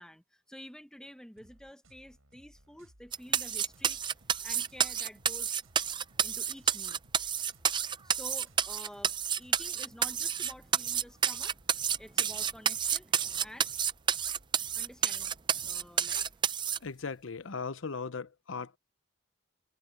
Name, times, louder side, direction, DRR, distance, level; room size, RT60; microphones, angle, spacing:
voice 1, 0.0-4.0 4.4-5.5 6.2-7.0 8.0-11.6 12.0-13.1 13.4-13.7 14.7-15.3 15.6-16.2, equal, 5° left, 1.1 m, -50 dB
sound 1, 1.4-16.4, right 1 dB, 80° right, 7.0 m, -61 dB
sound 2, 3.1-16.8, right 8 dB, 20° right, 0.4 m, -30 dB
voice 2, 16.8-18.8, left 4 dB, 65° left, 0.8 m, -38 dB
head